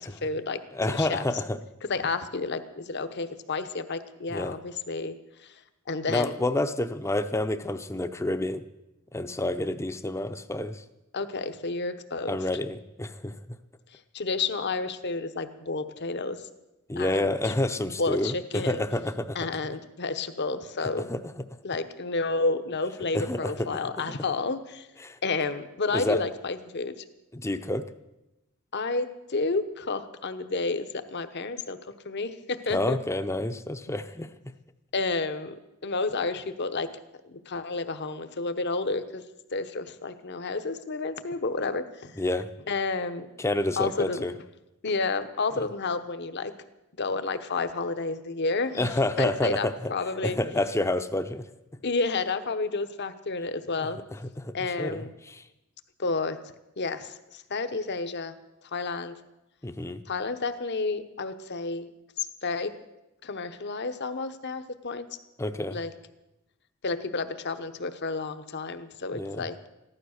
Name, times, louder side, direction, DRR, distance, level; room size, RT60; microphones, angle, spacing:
voice 1, 0.0-0.6 0.9-1.2 1.9-5.5 5.9-6.4 11.1-12.4 13.9-16.5 17.0-17.5 18.0-18.8 19.3-21.1 21.6-24.9 25.2-26.9 28.7-31.8 32.0-33.0 34.9-35.6 35.8-36.9 37.5-39.2 39.5-42.2 42.7-43.3 43.8-44.3 44.8-46.5 47.0-50.4 51.8-54.0 54.5-55.1 56.0-56.4 56.8-58.4 58.7-59.2 60.1-61.9 62.2-62.7 63.2-65.1 65.7-65.9 66.8-69.6, left 3 dB, 50° left, 10 dB, 0.9 m, -30 dB
voice 2, 0.7-1.6 4.3-4.5 6.1-8.6 9.1-10.8 12.3-13.3 16.9-19.4 21.1-21.2 23.1-23.9 25.0-25.2 25.9-26.2 27.3-27.8 32.7-34.3 42.2-42.5 43.4-44.3 48.8-49.7 50.2-51.4 54.4-55.4 59.6-60.0 65.4-65.8 69.1-69.5, left 1 dB, 15° left, 10 dB, 0.6 m, -28 dB
15.0 x 12.0 x 6.5 m, 0.97 s
head